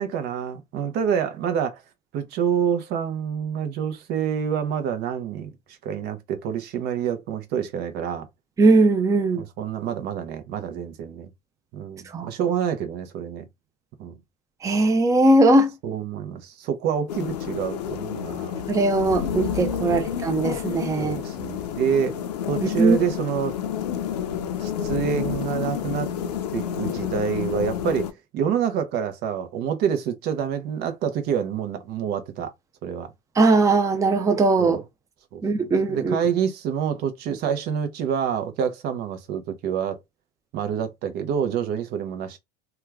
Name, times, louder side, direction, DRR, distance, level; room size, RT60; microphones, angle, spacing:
voice 1, 0.0-1.8 2.1-5.5 5.8-8.3 9.3-11.3 11.7-13.5 14.0-14.2 15.8-18.5 19.8-20.1 21.0-22.2 22.5-23.6 24.6-26.1 26.5-28.1 28.3-32.5 32.8-33.1 34.6-34.8 35.3-35.4 35.9-40.0 40.5-42.4, right 8 dB, 55° right, 0.9 m, -27 dB
voice 2, 8.6-9.4 12.1-12.3 14.6-15.7 18.7-21.2 22.6-23.0 33.4-34.8 35.4-36.2, right 2 dB, 15° right, 0.6 m, -19 dB
sound 1, 17.1-28.1, left 9 dB, 80° left, 0.6 m, -29 dB
2.9 x 2.3 x 3.5 m
hypercardioid pair, 80°, 20 cm